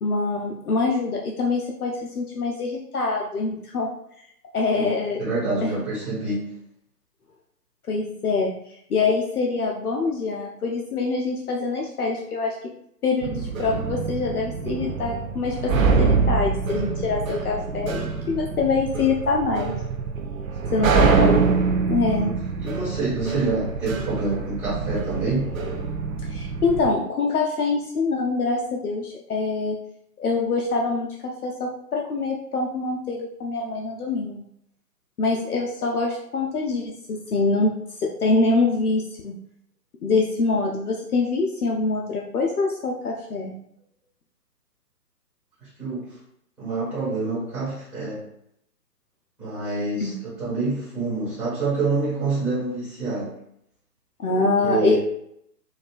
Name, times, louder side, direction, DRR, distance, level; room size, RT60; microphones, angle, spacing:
voice 1, 0.0-3.9 4.5-5.2 5.6-5.7 7.9-8.5 8.9-12.6 13.0-15.7 16.0-19.7 20.7-21.5 21.9-22.3 26.3-29.8 30.2-34.4 35.2-37.7 38.0-39.4 40.0-43.6 50.0-50.2 54.2-55.0, left 3 dB, 60° left, -1 dB, 0.6 m, -24 dB
voice 2, 5.2-6.5 20.6-21.1 22.1-25.5 45.6-46.1 46.6-48.2 49.4-53.4 54.3-55.0, right 3 dB, ahead, -10 dB, 1.4 m, -27 dB
sound 1, 13.2-26.9, right 5 dB, 55° right, 0.5 m, -25 dB
4.2 x 2.4 x 2.4 m, 0.73 s
figure-of-eight pair, 135°, 50 cm